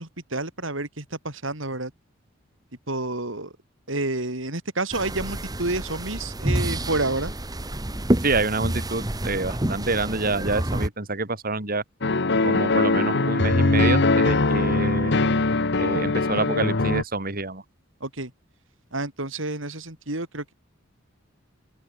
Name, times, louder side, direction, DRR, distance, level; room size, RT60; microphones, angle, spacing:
voice 1, 0.0-1.9 2.9-3.5 3.9-7.3 18.0-18.3 18.9-20.5, right 2 dB, 75° right, 5.6 m, -29 dB
sound 1, 4.9-10.9, right 1 dB, 20° right, 1.4 m, -28 dB
voice 2, 8.2-11.8 12.4-15.1 15.8-17.6, right 3 dB, 50° right, 5.0 m, -27 dB
sound 2, 12.0-17.0, left 3 dB, 60° left, 1.3 m, -21 dB
open air
head